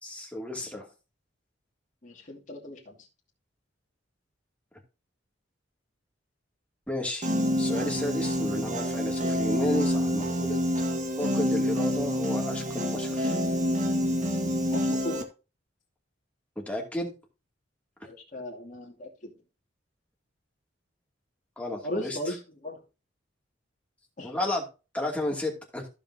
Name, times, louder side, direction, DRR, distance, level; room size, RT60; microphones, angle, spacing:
voice 1, 0.0-0.9 6.9-7.3 7.6-10.6 11.2-13.4 16.6-17.1 21.6-22.2 24.2-24.6 24.9-25.9, left 1 dB, 5° left, 1 dB, 2.5 m, -32 dB
voice 2, 2.0-3.1 14.7-15.3 18.0-19.3 21.8-22.8 24.2-24.3, left 1 dB, 45° left, -2 dB, 2.5 m, -37 dB
Piano, 7.2-15.2, equal, 45° right, 1.5 m, -27 dB
15.0 x 5.3 x 2.8 m, 0.30 s
head